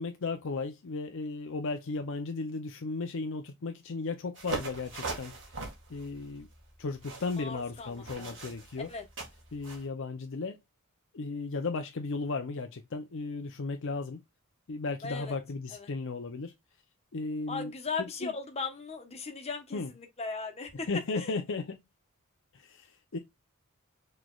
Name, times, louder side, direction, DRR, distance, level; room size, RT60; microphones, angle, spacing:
voice 1, 0.0-5.3 5.9-6.5 6.8-8.9 9.5-10.6 11.1-14.2 14.7-16.5 17.1-17.7 18.2-18.3 19.7-19.9 20.9-21.8 22.5-23.2, left 3 dB, 60° left, 0.6 m, -35 dB
sound 1, 4.4-9.8, right 3 dB, 55° right, 1.9 m, -41 dB
voice 2, 7.3-8.5 8.9-9.0 15.0-15.3 15.7-15.9 17.5-20.9 21.1-21.3, left 4 dB, 30° left, 1.1 m, -38 dB
6.0 x 3.2 x 2.3 m
head